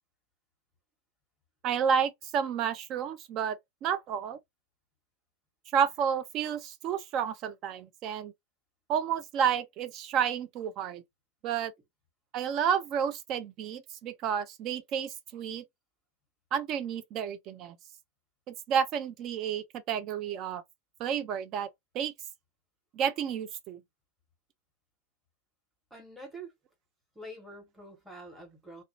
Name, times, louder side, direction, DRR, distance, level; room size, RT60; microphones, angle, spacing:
voice 1, 1.6-4.4 5.7-8.3 8.9-11.0 11.4-11.7 12.3-15.6 16.5-17.8 18.5-20.6 21.0-21.7 21.9-22.1 22.9-23.8, right 8 dB, 35° right, 0.5 m, -30 dB
voice 2, 25.9-26.5 27.1-28.8, right 1 dB, ahead, 1.3 m, -46 dB
2.5 x 2.1 x 2.8 m
figure-of-eight pair, 90°, 0 cm